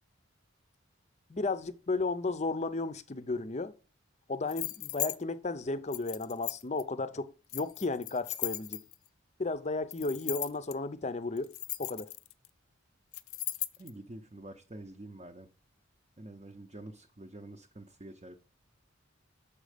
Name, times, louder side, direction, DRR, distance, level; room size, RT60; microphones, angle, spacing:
voice 1, 1.3-3.7 4.3-8.8 9.4-11.5 11.8-12.1, left 3 dB, 35° left, 0.5 m, -34 dB
sound 1, 4.5-5.2 5.9-6.8 7.5-9.1 9.9-10.7 11.4-12.5 13.1-13.9, left 17 dB, 85° left, 0.5 m, -37 dB
voice 2, 13.8-15.5 16.2-18.4, right 1 dB, 30° right, 0.6 m, -47 dB
7.2 x 5.1 x 5.0 m
head